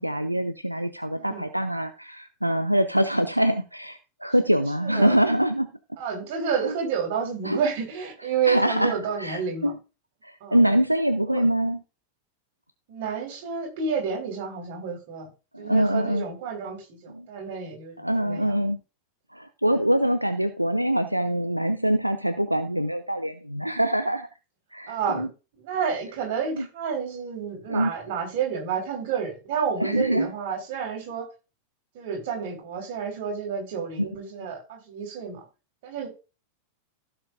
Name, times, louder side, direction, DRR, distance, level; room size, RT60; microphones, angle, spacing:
voice 1, 0.0-5.7 6.6-6.7 7.4-7.6 8.5-8.9 9.2-9.8 10.2-11.8 15.5-16.2 17.1-17.3 18.0-18.8 19.3-24.3 24.7-25.3 26.5-26.7 27.7-27.9 29.8-30.3 34.0-34.1, equal, 90° right, 0.6 m, -24 dB
voice 2, 1.1-1.4 4.8-5.2 6.0-9.7 10.4-10.6 11.2-11.4 12.9-15.3 15.6-18.5 24.9-25.3 25.5-31.3 31.9-35.4 35.8-36.1, right 6 dB, 50° right, 4.7 m, -30 dB
15.5 x 6.8 x 2.6 m
figure-of-eight pair, 90°, 0 cm